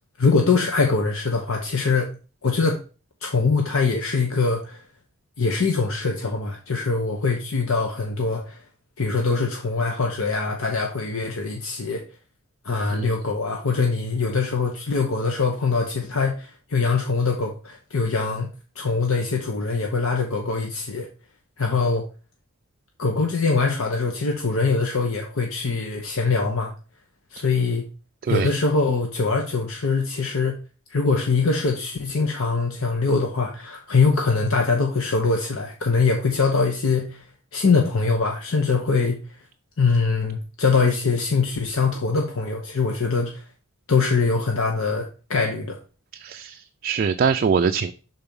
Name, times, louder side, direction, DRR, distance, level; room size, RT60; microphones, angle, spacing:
voice 1, 0.2-2.1 2.4-2.8 3.2-4.8 5.4-8.6 9.0-12.0 12.6-18.5 18.8-21.1 21.6-22.1 23.0-26.7 27.3-27.8 28.3-30.6 30.9-37.2 37.5-39.2 39.8-43.4 43.9-45.8, left 4 dB, 75° left, 0.8 m, -23 dB
voice 2, 46.1-47.9, right 6 dB, 45° right, 0.3 m, -23 dB
5.9 x 4.0 x 5.3 m
head